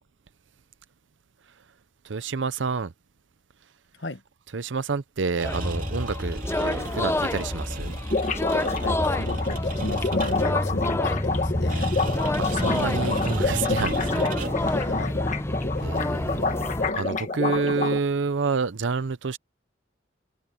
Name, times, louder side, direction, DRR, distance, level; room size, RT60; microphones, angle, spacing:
voice 1, 2.0-2.9 4.5-8.0 12.4-14.9 15.8-16.6 16.9-19.4, right 4 dB, 90° right, 0.7 m, -29 dB
sound 1, 5.3-10.7 11.7-14.8, right 3 dB, 50° right, 2.7 m, -38 dB
sound 2, 5.4-16.9, left 1 dB, 15° left, 0.7 m, -28 dB
sound 3, 6.7-6.8 7.1-7.2 7.4-7.5 7.7-18.0, left 3 dB, 40° left, 1.6 m, -28 dB
voice 2, 8.8-12.0 14.9-15.9, left 2 dB, 70° left, 1.6 m, -35 dB
head